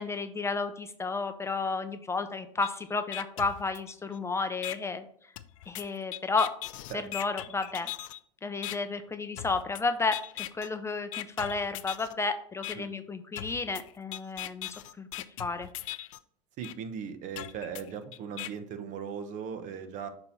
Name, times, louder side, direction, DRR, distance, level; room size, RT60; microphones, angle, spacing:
voice 1, 0.0-5.0 5.7-6.5 7.1-7.9 8.4-15.1 15.4-15.7, left 4 dB, 15° left, 8 dB, 0.5 m, -32 dB
sound 1, 2.6-2.7 3.1-4.2 4.6-4.8 5.4-8.2 8.6-8.8 9.4-9.8 10.1-10.7 11.1-12.1 12.6-12.7 13.4-16.2 16.6-16.7 17.4-18.5, left 15 dB, 75° left, 0.5 m, -39 dB
voice 2, 16.6-20.1, right 7 dB, 50° right, 8 dB, 0.9 m, -38 dB
6.6 x 2.9 x 5.3 m, 0.62 s
hypercardioid pair, 95°, 17 cm